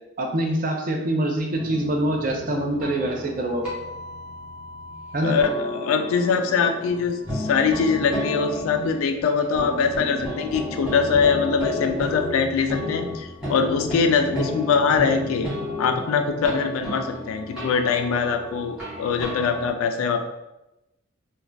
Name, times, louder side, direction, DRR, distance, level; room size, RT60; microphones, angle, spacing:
voice 1, 0.2-3.7 5.1-5.4, right 1 dB, 40° right, 2 dB, 0.4 m, -25 dB
sound 1, 1.5-19.7, left 1 dB, 5° right, 1.1 m, -32 dB
voice 2, 5.2-15.5 15.8-20.2, left 5 dB, 85° left, 7 dB, 0.3 m, -23 dB
2.5 x 2.2 x 3.2 m, 0.95 s
head